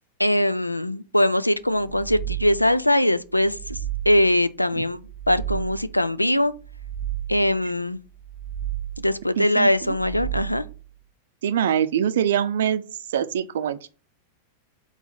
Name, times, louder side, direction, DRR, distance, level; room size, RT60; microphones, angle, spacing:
voice 1, 0.2-3.8 4.1-5.0 5.3-6.5 7.3-8.0 9.0-10.6, left 1 dB, 85° left, 0.4 m, -21 dB
sound 1, 1.7-2.8 3.3-4.4 4.9-6.0 6.5-7.6 8.1-9.2 9.7-10.8, right 12 dB, 5° left, 1.2 m, -33 dB
voice 2, 9.4-10.0 11.4-12.8 13.1-13.9, right 9 dB, 60° right, 0.5 m, -24 dB
4.6 x 4.0 x 5.6 m
figure-of-eight pair, 90°, 0 cm